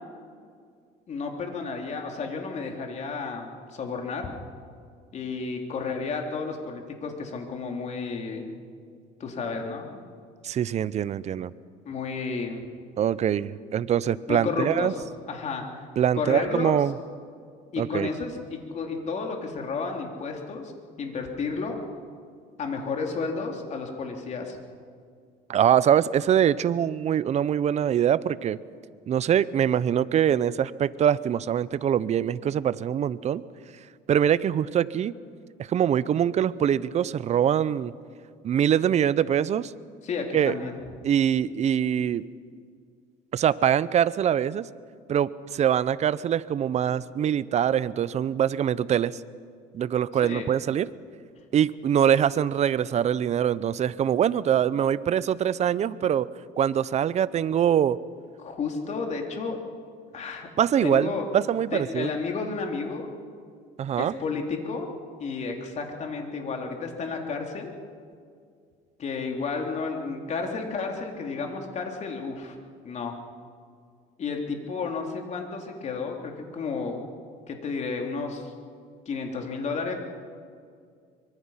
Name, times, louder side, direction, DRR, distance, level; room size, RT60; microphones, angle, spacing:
voice 1, 1.1-4.3 5.1-8.5 9.2-10.0 11.9-12.6 14.3-15.0 15.3-15.8 16.2-16.8 17.7-20.7 21.0-21.8 22.6-24.6 40.0-40.8 50.2-50.5 58.4-59.6 60.1-60.5 60.8-61.3 61.7-63.1 64.0-64.9 65.2-67.7 69.0-72.6 72.8-73.1 74.2-77.0 77.5-78.5 79.1-79.9, left 4 dB, 40° left, 2 dB, 3.4 m, -32 dB
voice 2, 10.4-11.5 13.0-14.9 16.0-16.9 17.8-18.1 25.5-28.6 29.1-33.4 34.1-35.1 35.6-37.9 38.4-39.7 40.3-40.6 41.0-42.3 43.3-44.7 45.1-49.2 49.7-50.9 51.5-56.3 56.6-58.0 60.6-62.1 63.8-64.1, right 9 dB, 40° right, 17 dB, 0.7 m, -23 dB
24.5 x 23.5 x 5.8 m, 2.2 s
cardioid pair, 115°, 17 cm